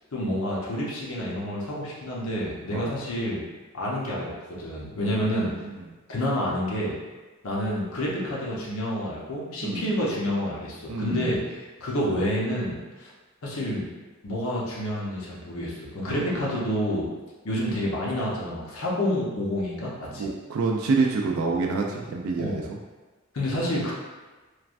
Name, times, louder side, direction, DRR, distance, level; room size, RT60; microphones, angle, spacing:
voice 1, 0.1-3.4 3.7-5.5 6.1-7.0 7.4-11.4 11.8-13.1 13.4-13.9 14.2-17.0 17.4-20.3 22.4-22.7 23.3-23.9, equal, 75° left, -5 dB, 0.7 m, -28 dB
voice 2, 5.0-5.9 9.6-9.9 10.9-11.3 16.1-16.4 20.2-22.8, right 4 dB, 70° right, 0 dB, 0.3 m, -28 dB
3.1 x 2.2 x 2.4 m, 1.3 s
head